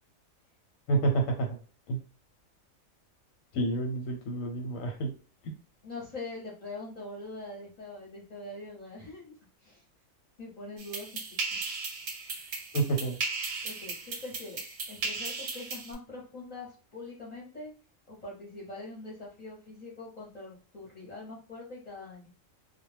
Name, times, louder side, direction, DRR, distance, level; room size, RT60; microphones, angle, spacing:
voice 1, 0.9-1.6 1.9-2.0 3.5-5.1 5.4-5.5 12.7-13.2, right 2 dB, 90° left, 1 dB, 1.0 m, -29 dB
voice 2, 5.8-9.8 10.4-11.1 11.5-11.7 13.6-17.7 18.1-22.3, left 2 dB, 40° left, -5 dB, 0.6 m, -43 dB
sound 1, 10.8-15.9, right 4 dB, 60° right, 0.7 m, -36 dB
2.2 x 2.0 x 3.1 m, 0.38 s
omnidirectional pair, 1.4 m